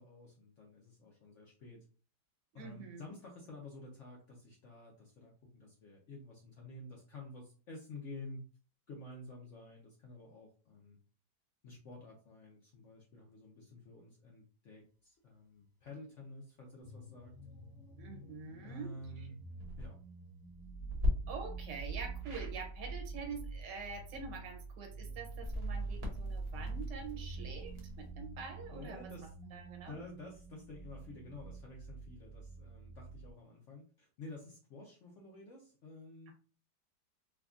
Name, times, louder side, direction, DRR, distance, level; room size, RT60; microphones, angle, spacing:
voice 1, 0.0-1.8 2.5-8.4 8.9-11.0 11.6-17.3 18.6-19.4 19.8-20.0 28.7-29.3 29.9-36.3, left 2 dB, 65° left, 0 dB, 0.7 m, -51 dB
voice 2, 2.5-3.0 18.0-19.3 21.3-30.0 36.3-36.4, right 5 dB, 85° right, 4 dB, 1.4 m, -46 dB
sound 1, 16.8-33.3, right 3 dB, 35° left, 1.1 m, -45 dB
sound 2, 19.5-19.9 20.9-21.1 22.2-22.5 25.3-28.1, left 2 dB, 50° right, 0.8 m, -39 dB
3.4 x 2.2 x 2.4 m, 0.38 s
omnidirectional pair, 1.9 m